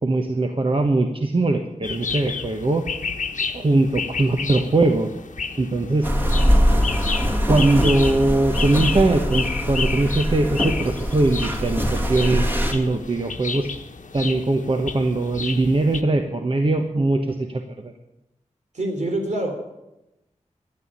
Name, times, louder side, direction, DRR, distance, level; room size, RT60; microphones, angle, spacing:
voice 1, 0.0-2.8 3.5-5.1 5.6-6.1 7.5-12.4 12.7-13.7 14.1-17.9, right 2 dB, 45° right, 4 dB, 1.2 m, -21 dB
sound 1, 1.8-16.0, left 5 dB, 90° left, 1.2 m, -32 dB
sound 2, 6.0-12.7, equal, 15° right, 2.4 m, -22 dB
voice 2, 18.7-19.6, right 1 dB, 70° right, 3 dB, 3.7 m, -26 dB
13.5 x 11.0 x 8.7 m, 0.92 s
wide cardioid pair, 95°, 13 cm